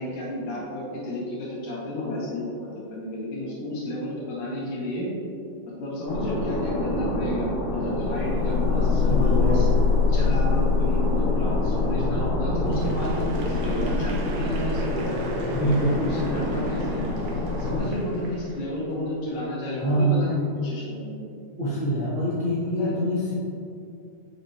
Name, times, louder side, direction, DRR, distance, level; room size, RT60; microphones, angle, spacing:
voice 1, 0.0-5.1 5.8-9.7 10.1-15.2 16.0-17.1 17.6-21.2 22.8-22.9, left 1 dB, 80° left, -6 dB, 3.3 m, -31 dB
sound 1, 6.1-17.8, left 3 dB, 60° left, 2.2 m, -24 dB
voice 2, 9.1-9.6 15.5-16.0 19.8-20.3 21.6-23.3, right 1 dB, 45° right, -10 dB, 1.0 m, -25 dB
Applause / Crowd, 12.7-19.1, right 4 dB, 75° right, 2.0 m, -45 dB
7.4 x 6.1 x 2.8 m, 2.4 s
omnidirectional pair, 3.8 m